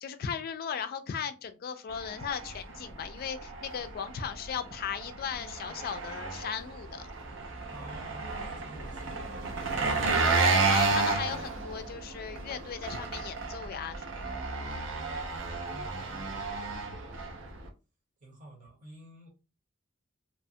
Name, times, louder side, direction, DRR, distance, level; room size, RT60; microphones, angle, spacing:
voice 1, 0.0-7.1 10.2-14.1, left 7 dB, 45° left, 0.3 m, -37 dB
Engine, 1.9-17.7, right 3 dB, 65° right, 0.5 m, -32 dB
voice 2, 7.7-10.2 15.7-16.4 18.2-19.3, right 1 dB, 40° right, 0.9 m, -50 dB
2.9 x 2.1 x 2.7 m
head